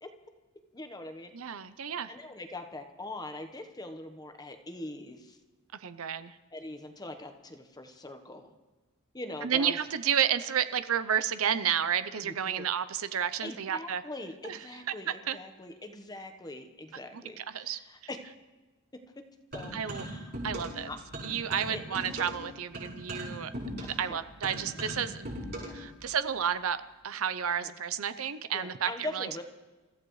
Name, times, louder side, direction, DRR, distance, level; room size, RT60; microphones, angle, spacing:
voice 1, 0.7-1.3 2.1-5.4 6.5-8.5 9.1-9.8 12.2-12.7 13.4-18.2 19.2-19.3 19.5-20.3 20.9-21.0 21.6-21.8 24.0-24.2 25.6-25.8 27.6-27.7 28.5-29.4, left 2 dB, 20° left, 6 dB, 1.1 m, -42 dB
voice 2, 1.3-2.1 5.8-6.4 9.4-14.0 14.4-14.6 15.3-15.4 17.1-17.8 19.7-20.0 20.4-20.9 21.2-23.5 24.0-25.3 25.7-29.3, right 8 dB, 75° right, 13 dB, 0.6 m, -31 dB
sound 1, 19.5-20.8 21.1-25.9, equal, 50° right, 7.0 m, -39 dB
29.0 x 14.5 x 3.2 m, 1.2 s
head